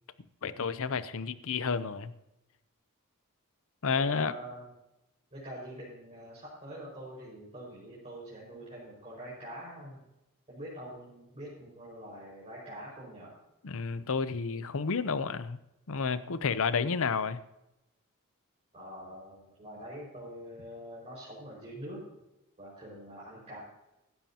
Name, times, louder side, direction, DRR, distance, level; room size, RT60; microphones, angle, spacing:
voice 1, 0.4-2.1 3.8-4.3 13.6-15.6 15.9-17.4, left 5 dB, 65° left, 14 dB, 0.7 m, -31 dB
voice 2, 4.1-4.7 5.3-10.1 10.5-13.4 18.7-22.0 22.6-23.6, equal, 30° right, -7 dB, 5.3 m, -45 dB
16.5 x 13.0 x 2.9 m, 0.92 s
head